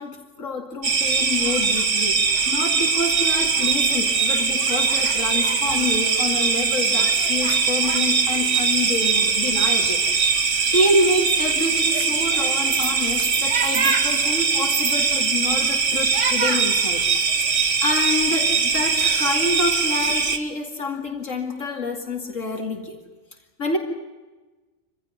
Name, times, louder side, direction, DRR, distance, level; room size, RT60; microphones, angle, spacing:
voice 1, 0.0-10.1 10.4-17.1 17.4-23.0 23.6-23.8, left 2 dB, 75° left, 3 dB, 2.8 m, -27 dB
sound 1, 0.8-20.4, right 5 dB, 65° right, 1.8 m, -21 dB
25.0 x 16.0 x 9.8 m, 1.2 s
omnidirectional pair, 1.3 m